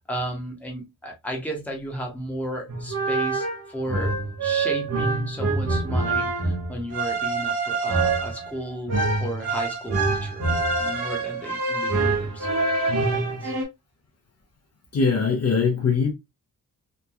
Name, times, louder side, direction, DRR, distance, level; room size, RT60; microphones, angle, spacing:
voice 1, 0.1-4.1 4.4-10.4 10.8-12.5 13.1-13.5, equal, 5° left, 0.9 m, -34 dB
sound 1, 2.7-13.7, right 3 dB, 45° right, 0.9 m, -25 dB
voice 2, 14.9-16.1, left 5 dB, 45° left, 0.7 m, -21 dB
3.1 x 2.2 x 2.3 m
wide cardioid pair, 130°, 36 cm